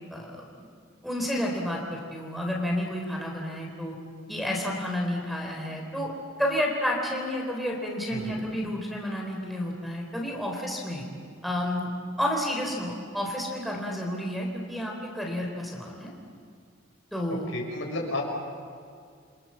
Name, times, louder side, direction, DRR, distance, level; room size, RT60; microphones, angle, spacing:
voice 1, 0.1-0.6 1.0-3.9 4.3-6.1 6.4-11.0 11.4-11.9 12.2-16.1 17.1-17.5, left 1 dB, ahead, 0 dB, 3.9 m, -30 dB
voice 2, 8.1-8.4 17.3-18.3, left 2 dB, 70° left, 0 dB, 6.5 m, -33 dB
28.5 x 25.5 x 7.4 m, 2.3 s
head